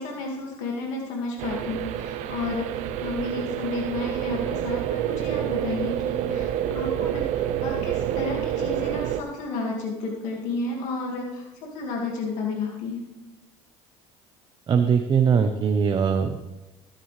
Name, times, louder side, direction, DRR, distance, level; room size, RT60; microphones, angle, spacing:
voice 1, 0.0-13.0, left 3 dB, 75° left, -1 dB, 2.2 m, -32 dB
sound 1, 1.4-9.2, right 10 dB, 70° right, 0.7 m, -28 dB
voice 2, 14.7-16.4, right 6 dB, 35° right, 6 dB, 0.9 m, -21 dB
16.0 x 10.0 x 3.4 m, 1.0 s
supercardioid pair, 105°, 12 cm